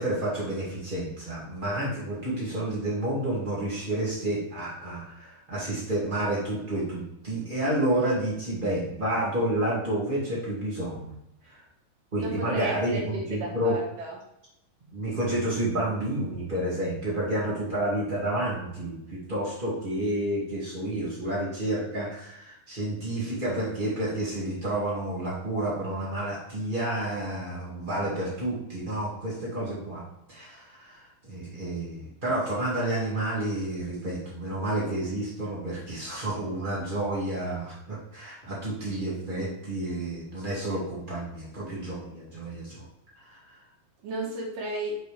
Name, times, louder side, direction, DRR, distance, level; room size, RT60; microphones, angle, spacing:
voice 1, 0.0-11.1 11.4-11.6 12.1-13.8 14.9-30.0 30.3-42.8 43.2-43.3, right 1 dB, 35° right, -7 dB, 0.8 m, -30 dB
voice 2, 12.2-14.2 44.0-45.0, right 2 dB, 70° right, -1 dB, 2.5 m, -33 dB
7.1 x 5.2 x 3.2 m, 0.82 s
omnidirectional pair, 4.4 m